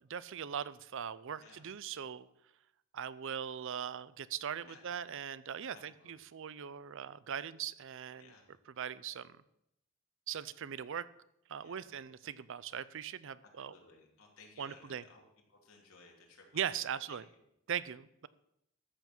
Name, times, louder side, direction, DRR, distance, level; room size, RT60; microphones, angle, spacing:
voice 1, 0.1-2.3 2.9-8.3 8.8-9.4 10.3-11.1 11.5-13.7 14.6-15.0 16.5-17.2 17.7-18.3, right 8 dB, 65° right, 17 dB, 0.5 m, -40 dB
voice 2, 5.7-6.1 8.2-8.5 11.6-11.8 13.6-15.2 15.5-16.6 17.1-17.2, left 3 dB, 80° left, 0 dB, 3.0 m, -58 dB
13.5 x 7.2 x 6.0 m, 0.78 s
head